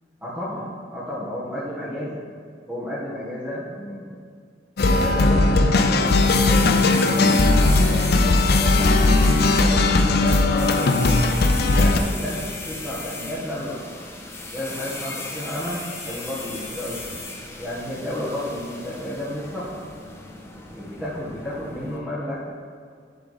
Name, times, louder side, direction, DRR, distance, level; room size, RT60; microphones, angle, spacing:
voice 1, 0.2-2.2 2.7-4.1 4.8-10.9 11.6-14.1 14.5-17.2 17.6-19.8 20.7-22.6, equal, 10° right, -11 dB, 1.7 m, -32 dB
sound 1, 4.8-12.0, left 2 dB, 60° left, 0.5 m, -18 dB
sound 2, 5.9-22.0, left 2 dB, 15° left, 0.8 m, -35 dB
11.0 x 3.8 x 5.0 m, 2.1 s
head